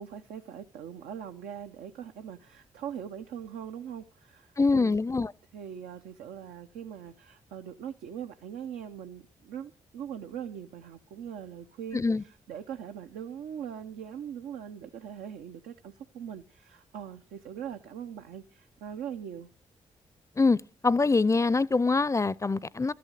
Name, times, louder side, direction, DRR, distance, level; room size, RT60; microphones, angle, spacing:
voice 1, 0.0-4.9 5.5-19.5, right 8 dB, 80° right, 0.6 m, -41 dB
voice 2, 4.6-5.3 11.9-12.2 20.4-20.6 20.8-22.9, left 3 dB, 20° left, 0.5 m, -24 dB
13.0 x 7.7 x 6.5 m
hypercardioid pair, 40°, 15 cm